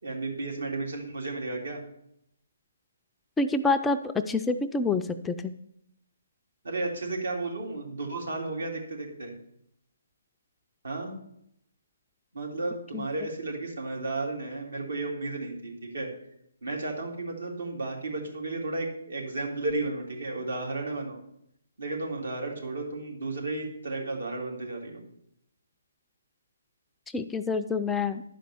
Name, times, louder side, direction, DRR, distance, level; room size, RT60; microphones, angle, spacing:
voice 1, 0.0-1.8 6.6-9.3 10.8-11.1 12.3-16.1 16.6-21.2 21.8-25.0, right 2 dB, 75° right, 0 dB, 3.2 m, -33 dB
voice 2, 3.4-4.0 4.3-5.5 12.9-13.0 27.1-28.2, left 3 dB, 5° left, 6 dB, 0.4 m, -27 dB
11.5 x 5.1 x 6.9 m, 0.75 s
hypercardioid pair, 150°, 0 cm